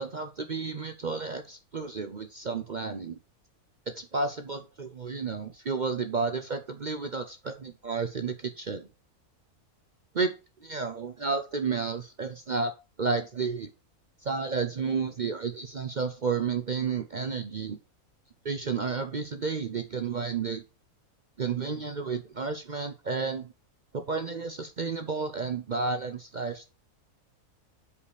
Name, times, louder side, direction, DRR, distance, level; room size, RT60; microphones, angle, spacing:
voice 1, 0.0-3.2 3.9-8.9 10.1-10.3 10.6-12.7 13.0-13.7 14.2-17.8 18.4-20.6 21.4-23.5 23.9-26.7, right 4 dB, 50° right, 7 dB, 0.6 m, -31 dB
5.6 x 5.0 x 6.3 m, 0.30 s
omnidirectional pair, 1.6 m